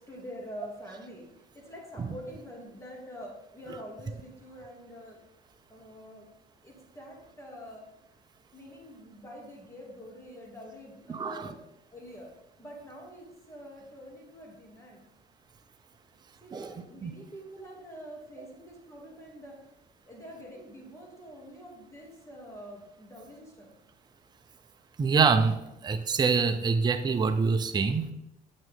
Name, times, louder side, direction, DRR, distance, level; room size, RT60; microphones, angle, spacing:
voice 1, 0.1-1.3 1.5-5.2 5.7-6.2 6.6-7.9 8.5-11.6 11.9-12.3 12.6-15.0 16.4-19.6 20.1-23.7, equal, 15° left, -1 dB, 2.4 m, -46 dB
voice 2, 11.1-11.5 16.5-17.1 18.4-18.5 25.0-28.1, right 5 dB, 25° right, 7 dB, 0.6 m, -26 dB
7.5 x 6.4 x 3.6 m, 0.86 s
cardioid pair, 110°, 17 cm